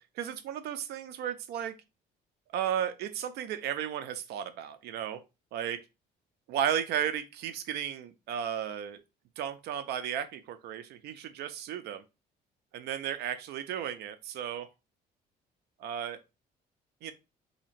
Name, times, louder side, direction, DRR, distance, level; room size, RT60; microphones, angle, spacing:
voice 1, 0.0-1.8 2.5-5.2 5.5-5.8 6.5-9.0 9.4-12.0 12.7-14.7 15.8-16.2 17.0-17.1, right 9 dB, 75° right, 0.5 m, -34 dB
2.8 x 2.8 x 4.2 m
cardioid pair, 110°, 17 cm